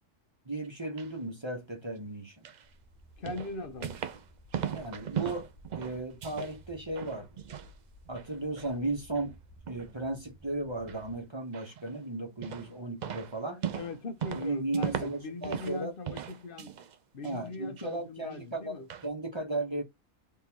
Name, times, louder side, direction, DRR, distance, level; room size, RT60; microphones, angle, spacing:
voice 1, 0.4-2.4 4.7-5.5 5.7-7.3 8.1-9.4 9.7-13.6 14.3-15.9 17.2-19.8, right 2 dB, 25° right, 0.9 m, -35 dB
sound 1, 0.6-1.1 2.4-2.7 3.3-4.3 4.5-6.6 6.9-7.7 8.1-8.7 9.2-9.3 9.7-9.9 10.9-11.0 11.5-12.0 12.4-12.8 13.0-15.8 16.1-17.0 17.2-17.9 18.3-18.4 18.9-19.1, right 9 dB, 70° right, 0.4 m, -38 dB
sound 2, 2.6-11.2, equal, 15° left, 0.6 m, -56 dB
voice 2, 3.2-4.0 13.7-16.8 17.1-18.9, left 3 dB, 50° left, 0.9 m, -40 dB
3.7 x 2.5 x 4.4 m
omnidirectional pair, 1.4 m